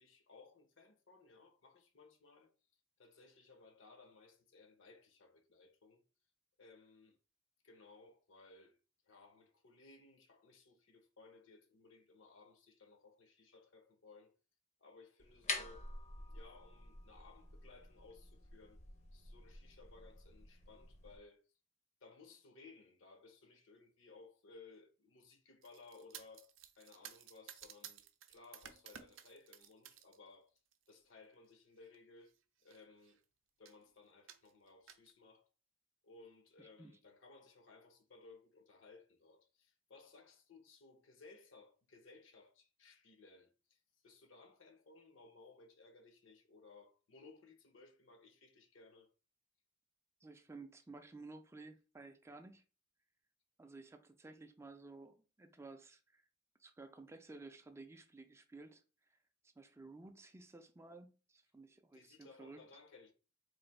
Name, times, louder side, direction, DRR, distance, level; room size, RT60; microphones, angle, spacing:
voice 1, 0.0-2.5 3.0-6.0 6.6-7.2 7.6-8.8 9.0-14.3 14.8-15.9 16.2-18.8 19.1-21.4 22.0-30.5 30.9-32.3 32.6-33.2 33.6-35.5 36.0-49.1 61.9-63.1, left 3 dB, 70° left, 0.7 m, -61 dB
sound 1, 15.2-21.2, left 3 dB, 35° left, 0.5 m, -48 dB
sound 2, 25.6-30.2 30.6-31.0 31.8-32.0 32.3-32.4 32.6-33.2 33.7-33.8 34.3-35.1, right 9 dB, 70° right, 0.5 m, -55 dB
voice 2, 36.6-37.0 50.2-52.6 53.6-56.2 56.6-59.2 59.4-62.7, right 3 dB, 15° right, 0.3 m, -55 dB
3.2 x 2.5 x 4.0 m
head